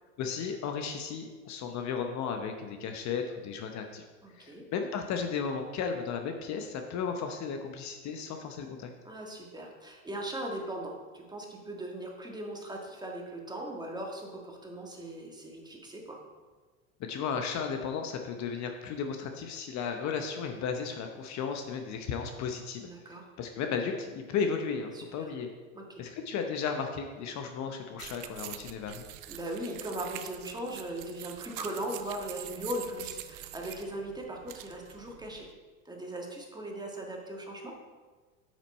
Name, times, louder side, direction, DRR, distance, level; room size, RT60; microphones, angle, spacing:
voice 1, 0.2-4.0 4.3-8.9 17.1-25.5 26.0-29.0, left 6 dB, 45° left, 5 dB, 0.9 m, -34 dB
voice 2, 4.2-4.6 9.0-16.2 22.8-23.2 24.9-25.3 25.7-26.0 29.3-35.5 35.8-37.7, right 1 dB, 10° right, 0 dB, 1.6 m, -39 dB
sound 1, 28.0-35.5, right 13 dB, 55° right, 0.7 m, -45 dB
8.6 x 6.2 x 4.2 m, 1.4 s
hypercardioid pair, 95°, 40 cm